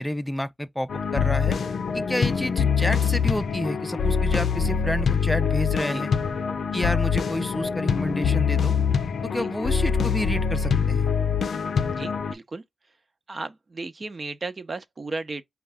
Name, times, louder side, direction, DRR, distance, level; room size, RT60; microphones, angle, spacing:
voice 1, 0.0-1.6 1.9-6.1 6.7-8.7 9.2-11.1, left 1 dB, 10° left, 0.5 m, -29 dB
sound 1, 0.9-12.3, left 6 dB, 85° left, 0.5 m, -24 dB
voice 2, 11.9-12.6 13.3-15.4, right 3 dB, 45° right, 0.7 m, -35 dB
5.2 x 2.3 x 3.4 m
wide cardioid pair, 95°, 0 cm